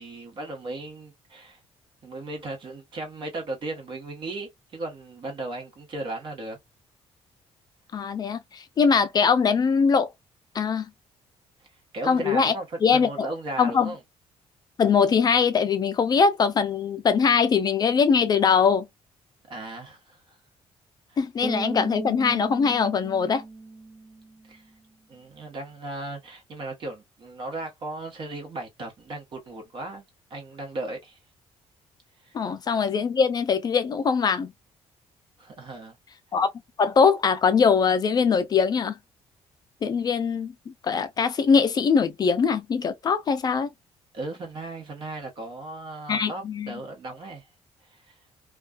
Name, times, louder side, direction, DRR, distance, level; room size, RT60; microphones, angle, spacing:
voice 1, 0.0-1.6 2.0-6.6 11.9-14.0 19.5-20.2 21.1-21.2 24.5-24.6 25.1-30.0 30.3-31.2 32.2-32.3 35.4-36.0 44.1-47.5 47.8-48.1, right 2 dB, 50° right, 1.1 m, -36 dB
voice 2, 7.9-10.1 10.5-10.9 12.1-12.5 12.8-13.3 13.6-13.9 14.8-18.9 21.2-23.4 32.3-34.5 36.3-36.5 36.8-39.0 39.8-43.7 46.1-46.7, left 6 dB, 40° left, 0.3 m, -22 dB
Bass guitar, 21.4-24.5, right 3 dB, 30° right, 0.4 m, -37 dB
2.4 x 2.2 x 2.2 m
cardioid pair, 120°, 11 cm